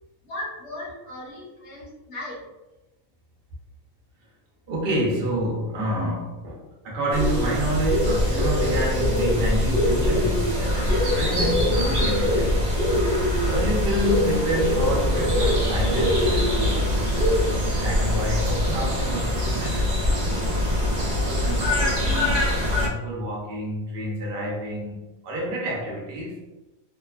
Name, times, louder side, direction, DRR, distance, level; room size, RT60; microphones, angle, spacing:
voice 1, 0.2-2.4, left 1 dB, 55° left, -5 dB, 1.2 m, -36 dB
voice 2, 4.7-12.6 13.4-17.0 17.8-25.0 25.2-26.4, right 1 dB, 50° right, -2 dB, 0.7 m, -29 dB
sound 1, 7.1-22.9, left 1 dB, 70° right, 0.4 m, -22 dB
2.8 x 2.1 x 2.3 m, 1.0 s
omnidirectional pair, 1.5 m